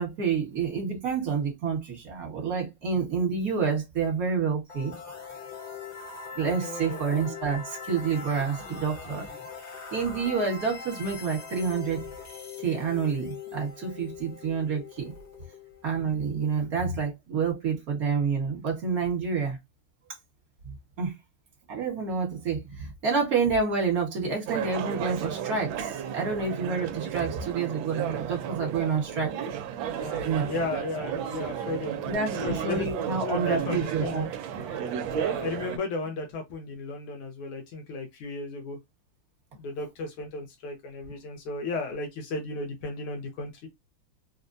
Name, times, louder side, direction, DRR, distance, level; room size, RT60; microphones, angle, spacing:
voice 1, 0.0-4.9 6.3-9.2 9.9-12.0 12.6-15.1 15.8-19.6 20.6-21.1 21.7-29.3 30.2-30.5 32.1-34.2 34.7-35.0, right 5 dB, 45° right, 1.6 m, -28 dB
sound 1, 4.7-16.5, left 6 dB, 40° left, 1.1 m, -41 dB
voice 2, 6.6-7.1 29.9-32.9 33.2-34.3 35.1-38.8 39.5-43.7, left 3 dB, 85° left, 1.8 m, -35 dB
sound 2, 24.5-35.8, right 9 dB, 75° right, 1.3 m, -33 dB
3.9 x 2.2 x 2.5 m
omnidirectional pair, 2.3 m